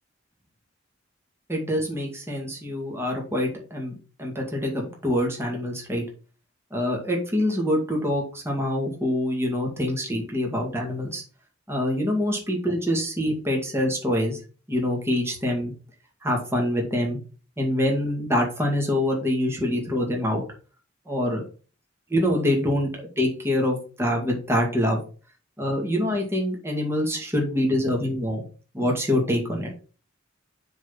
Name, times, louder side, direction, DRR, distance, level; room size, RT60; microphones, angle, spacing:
voice 1, 1.5-3.9 4.2-6.0 6.7-11.2 11.7-14.4 14.7-15.7 16.2-17.2 17.6-20.4 21.1-21.4 22.1-22.9 23.2-25.0 25.6-28.4 28.7-29.7, left 1 dB, 15° right, 0 dB, 2.2 m, -25 dB
7.0 x 4.1 x 5.8 m, 0.37 s
head